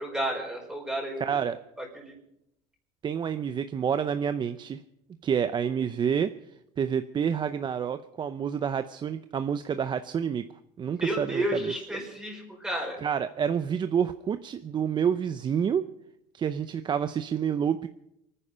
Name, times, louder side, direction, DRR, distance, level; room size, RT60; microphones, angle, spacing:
voice 1, 0.0-1.4 1.8-2.1 10.9-13.0, right 1 dB, 5° right, -1 dB, 5.0 m, -32 dB
voice 2, 1.2-1.6 3.0-4.8 5.2-6.3 6.8-10.4 10.8-11.7 13.0-15.8 16.3-17.9, right 7 dB, 30° right, 11 dB, 0.6 m, -28 dB
24.5 x 10.0 x 5.6 m, 0.80 s
cardioid pair, 120°, 15 cm